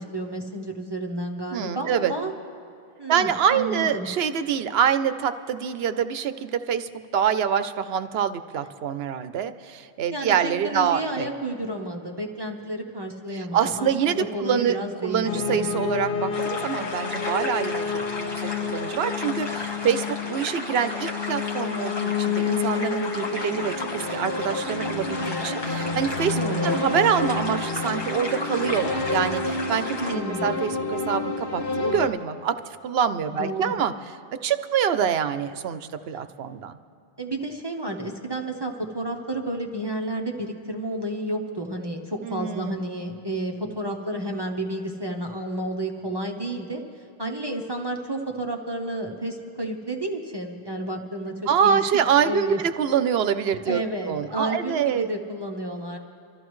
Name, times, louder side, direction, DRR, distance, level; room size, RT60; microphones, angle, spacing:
voice 1, 0.0-2.3 3.0-4.1 10.1-15.3 15.5-15.7 26.4-26.8 30.0-30.6 33.4-33.7 37.2-46.8 47.2-51.8 52.2-52.6 53.6-56.0, right 1 dB, 25° right, 1 dB, 0.9 m, -31 dB
voice 2, 1.5-2.1 3.1-11.3 13.3-14.8 15.0-17.8 18.2-26.4 26.6-33.9 34.4-36.7 42.2-42.8 51.5-55.1, right 8 dB, 75° right, 11 dB, 0.9 m, -25 dB
sound 1, 15.2-32.1, left 4 dB, 60° left, 1.1 m, -29 dB
sound 2, 16.3-30.1, left 2 dB, 25° left, 1.2 m, -34 dB
25.5 x 14.0 x 3.1 m, 2.6 s
omnidirectional pair, 1.1 m